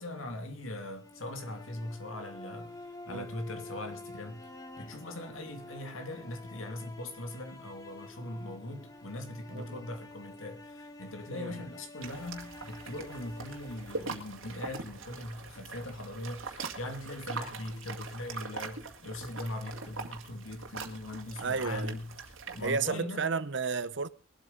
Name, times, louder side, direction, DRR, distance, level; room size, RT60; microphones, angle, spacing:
voice 1, 0.0-2.8 3.1-4.5 4.8-22.1 22.5-23.3, left 1 dB, 85° left, 2.4 m, -40 dB
sound 1, 0.9-15.0, left 2 dB, 20° left, 1.1 m, -49 dB
voice 2, 9.5-9.9 11.3-11.6 21.4-21.9 22.6-24.1, right 5 dB, 60° right, 0.8 m, -32 dB
sound 2, 12.0-22.7, right 4 dB, 80° right, 2.2 m, -42 dB
21.0 x 8.2 x 5.1 m
head